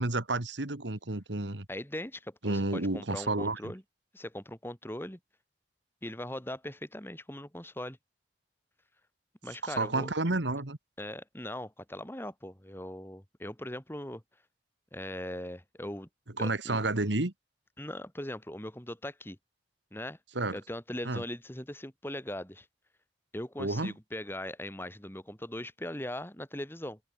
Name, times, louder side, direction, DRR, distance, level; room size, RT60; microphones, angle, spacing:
voice 1, 0.0-1.7 2.4-3.6 9.6-10.8 16.4-17.3 20.4-20.6 21.1-21.2 23.6-23.9, right 2 dB, 80° right, 2.1 m, -30 dB
voice 2, 1.7-3.8 4.1-5.2 6.0-8.0 9.4-10.1 11.0-14.2 14.9-16.1 16.4-16.8 17.8-19.4 19.9-20.2 20.5-22.7 23.3-27.0, left 1 dB, 10° left, 2.8 m, -40 dB
head